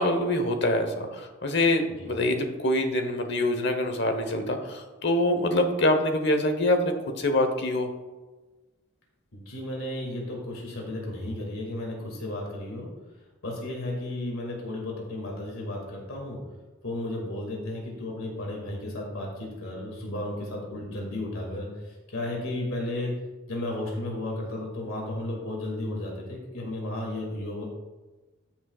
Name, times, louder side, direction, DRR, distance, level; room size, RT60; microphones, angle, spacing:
voice 1, 0.0-7.9, left 1 dB, 50° left, 6 dB, 1.1 m, -25 dB
voice 2, 9.3-12.9 13.4-16.4 16.8-23.2 23.5-27.6, left 1 dB, 80° left, -1 dB, 2.2 m, -33 dB
14.0 x 7.2 x 2.4 m, 1.2 s
head